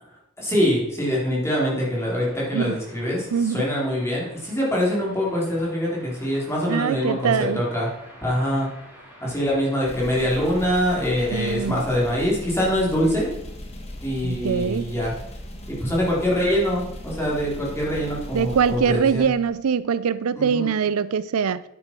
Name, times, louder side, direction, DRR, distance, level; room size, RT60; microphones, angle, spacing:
voice 1, 0.4-7.9 8.2-8.7 9.2-13.3 14.0-15.1 15.7-19.3 20.3-20.7, equal, 10° left, 3.5 m, -24 dB
sound 1, 2.1-11.7, equal, 10° right, 4.4 m, -48 dB
voice 2, 3.3-3.6 6.7-7.6 11.3-11.8 14.2-14.9 18.3-21.6, right 6 dB, 85° right, 0.5 m, -23 dB
sound 2, 9.8-19.7, left 1 dB, 30° left, 1.7 m, -38 dB
10.0 x 8.7 x 4.6 m
head